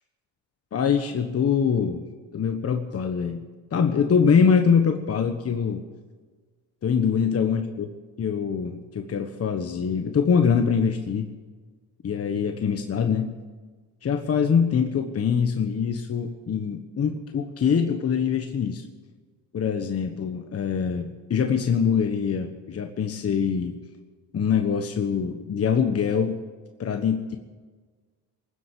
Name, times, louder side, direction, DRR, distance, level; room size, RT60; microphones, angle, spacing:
voice 1, 0.7-2.0 2.3-3.4 3.7-5.8 6.8-7.9 8.2-11.3 12.0-13.3 14.0-18.8 19.5-23.8 24.3-26.4 26.8-27.4, left 6 dB, 40° left, 5 dB, 1.3 m, -24 dB
20.5 x 8.0 x 8.5 m, 1.4 s
cardioid pair, 100°, 37 cm